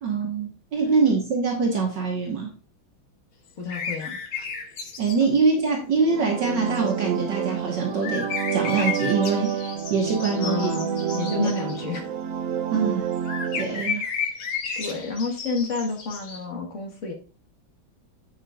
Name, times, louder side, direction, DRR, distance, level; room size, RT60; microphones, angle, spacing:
voice 1, 0.0-2.5 5.0-10.7 11.4-11.5 12.7-13.0 13.5-14.0, right 4 dB, 65° right, 0 dB, 2.1 m, -24 dB
voice 2, 3.6-4.5 10.4-12.1 13.9-14.1 14.8-17.1, left 4 dB, 40° left, 2 dB, 1.8 m, -30 dB
sound 1, 3.7-5.2 5.7-5.8 6.7-7.0 7.9-11.8 13.1-16.4, left 6 dB, 80° left, 2.1 m, -33 dB
sound 2, 5.9-13.8, right 7 dB, 85° right, 0.7 m, -28 dB
9.8 x 6.8 x 2.5 m, 0.36 s
omnidirectional pair, 2.1 m